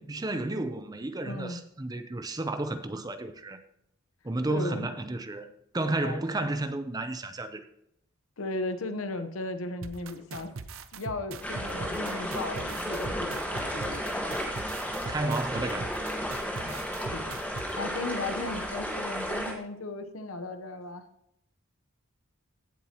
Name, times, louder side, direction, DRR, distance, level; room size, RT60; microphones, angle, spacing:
voice 1, 0.0-3.6 4.2-7.6 14.9-16.0, right 2 dB, 20° right, 0.5 m, -32 dB
voice 2, 1.2-1.6 4.5-4.9 6.0-6.2 8.4-10.5 10.9-14.4 16.6-17.3 17.8-21.0, left 2 dB, 85° left, 0.9 m, -36 dB
sound 1, 9.8-17.7, right 4 dB, 80° right, 0.7 m, -40 dB
sound 2, 11.4-19.5, equal, 5° left, 1.4 m, -33 dB
16.0 x 7.3 x 2.9 m
head